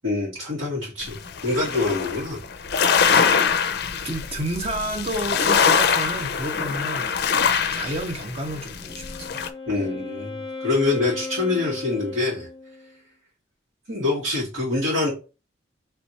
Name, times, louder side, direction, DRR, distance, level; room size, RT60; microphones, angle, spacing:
voice 1, 0.0-1.2 1.4-2.4 9.7-12.5 13.9-15.1, left 3 dB, 90° right, 2.0 m, -25 dB
sound 1, 1.0-9.5, left 6 dB, 55° left, 0.5 m, -23 dB
voice 2, 4.0-7.2 7.5-9.4, right 1 dB, 30° right, 0.8 m, -30 dB
Wind instrument woodwind instrument, 8.7-13.0, left 3 dB, 5° left, 1.4 m, -36 dB
3.3 x 3.1 x 4.1 m
head